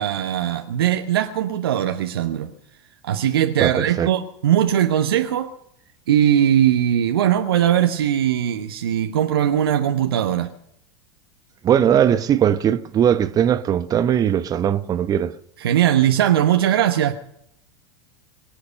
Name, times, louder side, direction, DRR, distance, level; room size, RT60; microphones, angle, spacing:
voice 1, 0.0-2.5 3.0-5.5 6.1-10.5 15.6-17.1, right 10 dB, 65° right, 1.1 m, -20 dB
voice 2, 3.6-4.1 11.6-15.3, right 9 dB, 30° right, 1.0 m, -19 dB
23.5 x 8.5 x 6.6 m
figure-of-eight pair, 85°, 13 cm